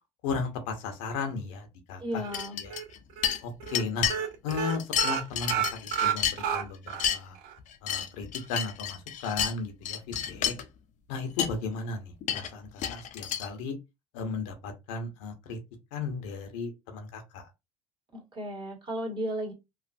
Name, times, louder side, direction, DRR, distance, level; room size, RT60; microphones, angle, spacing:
voice 1, 0.2-2.2 2.6-2.7 3.4-4.1 4.4-7.4 7.8-10.5 11.1-13.8 14.1-15.6 15.9-17.4, left 4 dB, 80° left, 0.8 m, -35 dB
voice 2, 2.0-2.6 18.1-19.5, right 1 dB, 30° right, 1.6 m, -34 dB
sound 1, 2.2-2.8 3.2-3.3 3.6-3.8 4.1-7.1 7.4-7.5 7.9-8.0, right 9 dB, 70° right, 0.7 m, -30 dB
sound 2, 2.3-3.0 3.2-4.2 4.5-6.6 6.9-7.2 7.6-9.5 9.8-10.6 11.1-11.2 11.4-11.5 12.2-13.5, left 9 dB, 50° left, 0.5 m, -30 dB
3.1 x 2.4 x 2.5 m
supercardioid pair, 90°, 16 cm